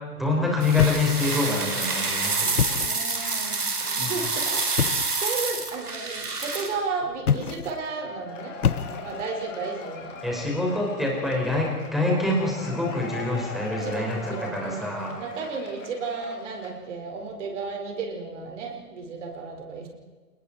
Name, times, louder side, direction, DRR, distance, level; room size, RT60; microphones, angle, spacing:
voice 1, 0.2-2.7 4.0-4.2 10.2-15.2, left 2 dB, ahead, -2 dB, 5.7 m, -26 dB
sound 1, 0.6-6.7, right 3 dB, 75° right, 4.3 m, -27 dB
sound 2, 0.8-1.6 2.4-3.1 4.8-5.2 7.2-7.9 8.6-9.3, left 7 dB, 70° left, 0.9 m, -26 dB
voice 2, 2.8-10.7 13.6-19.9, right 4 dB, 50° right, 2 dB, 5.3 m, -34 dB
Cheering / Applause / Crowd, 8.0-16.9, left 5 dB, 55° left, 4.1 m, -40 dB
29.0 x 20.5 x 4.5 m, 1.3 s
figure-of-eight pair, 120°, 46 cm